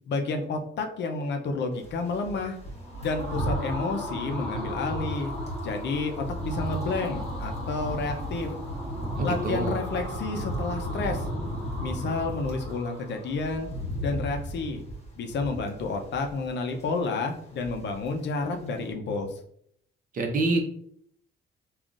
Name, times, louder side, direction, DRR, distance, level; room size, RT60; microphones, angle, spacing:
voice 1, 0.1-2.6 3.0-5.3 5.6-8.5 9.2-11.2 11.8-13.7 14.0-14.8 15.2-19.3, left 3 dB, 65° left, 4 dB, 0.6 m, -30 dB
sound 1, 1.8-12.7 13.1-16.5 16.7-17.0 17.3-18.1 18.4-18.6, right 1 dB, 35° left, 1.3 m, -35 dB
sound 2, 2.7-13.6, left 1 dB, 5° left, 1.3 m, -38 dB
voice 2, 9.2-9.7 20.1-20.6, right 2 dB, 45° right, 3 dB, 0.7 m, -26 dB
3.6 x 2.4 x 2.4 m, 0.67 s
cardioid pair, 90°, 20 cm